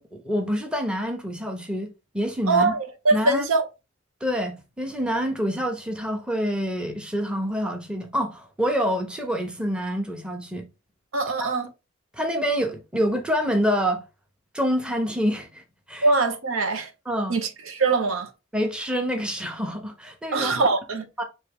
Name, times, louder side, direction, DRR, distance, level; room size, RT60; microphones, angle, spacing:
voice 1, 0.0-2.7 3.1-3.4 4.2-10.7 11.4-11.5 12.1-14.0 14.5-15.6 15.9-16.1 17.1-17.4 18.5-20.7 21.2-21.3, equal, 5° right, 0.8 m, -27 dB
voice 2, 2.5-3.7 11.1-11.7 16.0-16.9 17.3-18.3 20.3-21.1, right 3 dB, 80° right, 0.8 m, -22 dB
4.5 x 3.0 x 3.5 m
head